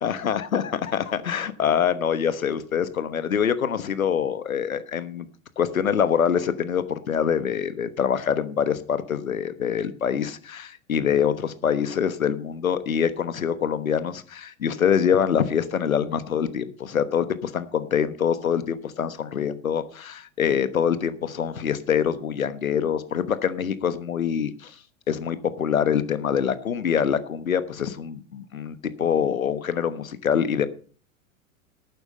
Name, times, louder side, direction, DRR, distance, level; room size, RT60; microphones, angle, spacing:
voice 1, 0.0-5.3 5.6-24.7 25.1-30.7, left 8 dB, 85° left, 13 dB, 1.2 m, -25 dB
12.0 x 9.3 x 5.4 m, 0.41 s
hypercardioid pair, 90°, 40 cm